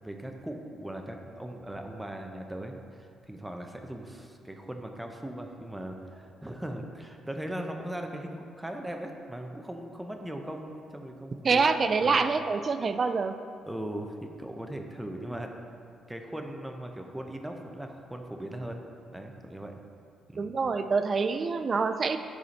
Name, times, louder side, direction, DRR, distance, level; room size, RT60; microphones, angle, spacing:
voice 1, 0.0-11.6 12.0-12.2 13.7-15.5 16.1-18.8 19.1-19.7 20.3-20.5, right 1 dB, 5° right, 3 dB, 0.7 m, -39 dB
voice 2, 11.4-13.4 20.4-22.2, right 4 dB, 40° right, 9 dB, 0.4 m, -26 dB
7.7 x 4.9 x 4.1 m, 2.3 s
cardioid pair, 90°, 0 cm